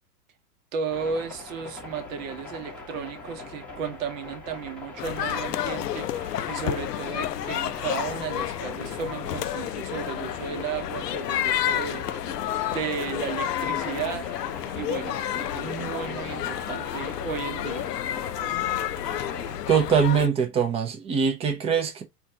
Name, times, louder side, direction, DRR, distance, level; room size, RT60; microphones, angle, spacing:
voice 1, 0.7-12.0 12.4-14.3 14.8-17.9, right 6 dB, 55° right, 1.0 m, -34 dB
sound 1, 0.9-19.6, left 3 dB, 5° left, 0.9 m, -41 dB
sound 2, 5.0-20.3, left 11 dB, 75° left, 0.5 m, -30 dB
voice 2, 19.7-22.0, right 6 dB, 15° right, 0.5 m, -22 dB
4.4 x 2.4 x 2.7 m
hypercardioid pair, 105°, 48 cm